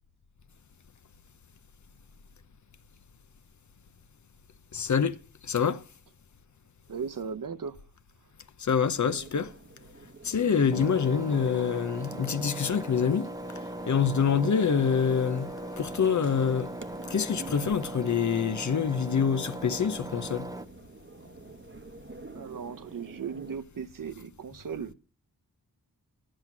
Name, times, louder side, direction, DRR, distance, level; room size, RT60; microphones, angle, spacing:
voice 1, 4.7-5.2 5.4-5.8 8.6-9.5 10.2-16.7 17.1-20.5, left 6 dB, 50° left, 0.7 m, -26 dB
voice 2, 6.9-7.8 22.3-24.9, right 6 dB, 60° right, 0.8 m, -37 dB
people in a church, 8.9-23.6, right 3 dB, 30° right, 0.9 m, -48 dB
Engine, 10.7-20.6, right 1 dB, 10° right, 0.7 m, -39 dB
11.0 x 7.7 x 6.0 m
cardioid pair, 50°, 37 cm